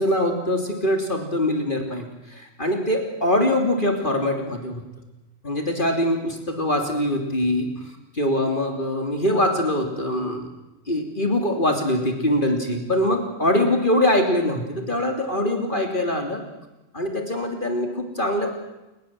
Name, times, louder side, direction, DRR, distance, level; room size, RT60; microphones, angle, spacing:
voice 1, 0.0-4.8 5.4-7.7 8.1-10.5 10.9-16.4 16.9-18.5, left 1 dB, 45° left, 4 dB, 3.4 m, -23 dB
30.0 x 20.0 x 7.7 m, 1.0 s
omnidirectional pair, 1.2 m